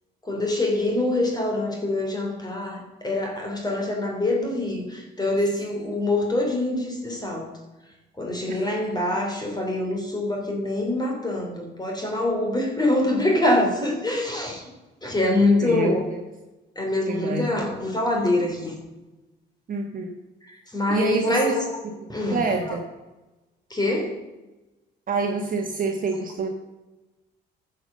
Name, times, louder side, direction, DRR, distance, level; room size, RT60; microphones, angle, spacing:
voice 1, 0.2-7.5 8.2-14.7 15.0-16.0 16.7-18.8 20.4-21.7 22.1-22.7 23.7-24.2, left 2 dB, 20° left, 0 dB, 3.2 m, -25 dB
voice 2, 15.6-16.0 17.1-17.5 19.7-20.1 20.9-21.4 22.3-22.8 25.1-26.5, right 4 dB, 45° right, 2 dB, 1.4 m, -26 dB
11.0 x 6.8 x 6.6 m, 1.1 s
cardioid pair, 90°, 20 cm